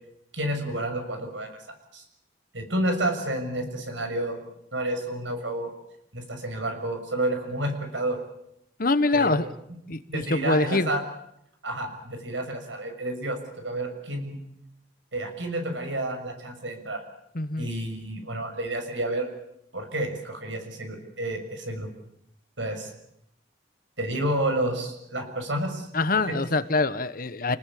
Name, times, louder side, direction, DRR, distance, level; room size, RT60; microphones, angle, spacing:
voice 1, 0.3-1.5 1.9-2.0 2.5-4.4 4.7-5.7 6.1-8.2 9.1-9.5 10.1-11.0 11.6-13.4 13.6-14.4 15.1-17.0 17.6-19.3 19.7-21.9 22.6-22.9 24.0-25.9 26.3-26.4, right 1 dB, 85° right, 6 dB, 6.5 m, -30 dB
voice 2, 8.8-9.5 9.9-10.9 17.3-17.7 25.9-27.6, left 3 dB, 50° left, 13 dB, 1.3 m, -24 dB
28.5 x 19.5 x 8.5 m, 0.76 s
head